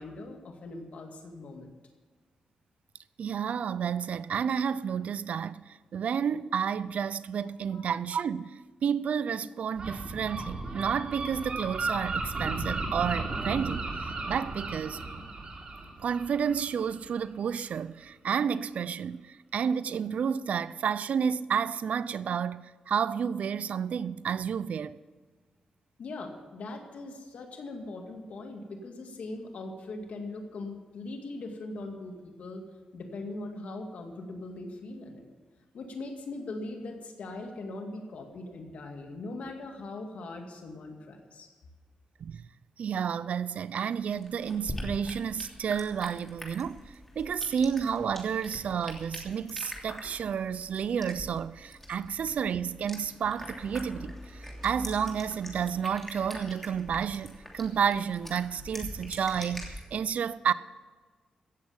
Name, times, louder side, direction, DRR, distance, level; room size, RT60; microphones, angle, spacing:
voice 1, 0.0-1.7 7.4-7.9 26.0-32.6 32.9-35.3 35.7-41.5, left 2 dB, 75° left, 2.2 m, -40 dB
voice 2, 3.2-15.0 16.0-25.0 42.2-42.4 42.8-46.8 47.2-60.5, right 7 dB, 75° right, 0.5 m, -31 dB
Gull seagull, 9.8-17.3, right 3 dB, 45° right, 3.2 m, -35 dB
sound 1, 43.9-59.8, left 1 dB, 10° left, 3.1 m, -43 dB
16.5 x 7.5 x 7.2 m
cardioid pair, 75°, 2 cm